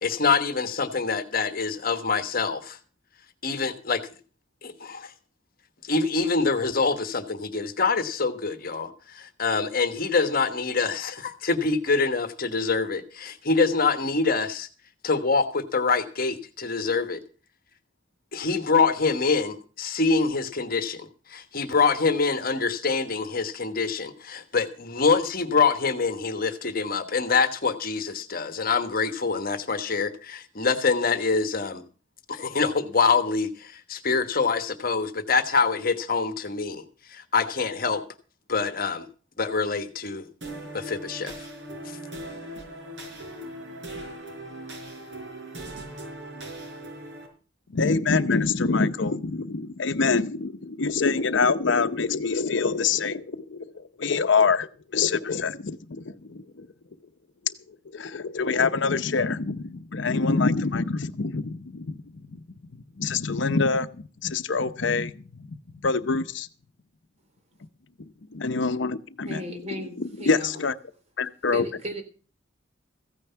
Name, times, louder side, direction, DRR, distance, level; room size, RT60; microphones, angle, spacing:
voice 1, 0.0-2.8 3.4-4.0 4.6-5.1 5.9-14.7 15.0-17.2 18.3-31.8 32.3-36.8 37.1-38.0 38.5-39.0 39.4-40.2 40.7-41.3, left 4 dB, 50° left, 1.3 m, -25 dB
sound 1, 40.4-47.3, right 1 dB, 75° right, 4.8 m, -39 dB
voice 2, 47.7-56.7 57.7-62.4 63.0-66.5 68.3-69.4 70.0-70.7 71.2-71.7, left 4 dB, 75° left, 0.8 m, -25 dB
voice 3, 69.2-70.6 71.5-72.0, equal, 35° right, 3.5 m, -36 dB
15.0 x 9.6 x 5.7 m
head